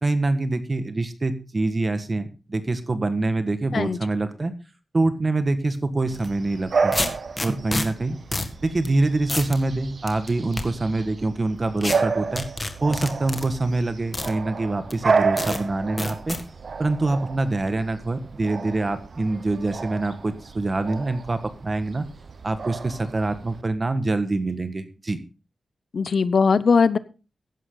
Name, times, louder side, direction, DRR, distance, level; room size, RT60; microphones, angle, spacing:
voice 1, 0.0-4.5 4.9-7.0 7.4-8.2 8.6-12.5 12.8-16.4 16.8-22.0 22.4-25.2, right 2 dB, 30° right, 10 dB, 1.6 m, -25 dB
sound 1, 6.1-6.3 6.9-7.9 8.3-8.5 8.8-8.9 9.3-9.6 10.1-10.6 11.8-12.0 12.4-13.5 14.1-14.3 14.9-15.0 15.4-15.6 16.0-16.4, left 2 dB, 25° left, 1.7 m, -28 dB
Bark / Bird vocalization bird call bird song, 6.1-23.6, right 5 dB, 55° right, 1.1 m, -31 dB
voice 2, 25.9-27.0, left 5 dB, 60° left, 16 dB, 0.7 m, -19 dB
15.0 x 11.0 x 3.9 m, 0.33 s
wide cardioid pair, 130°, 0 cm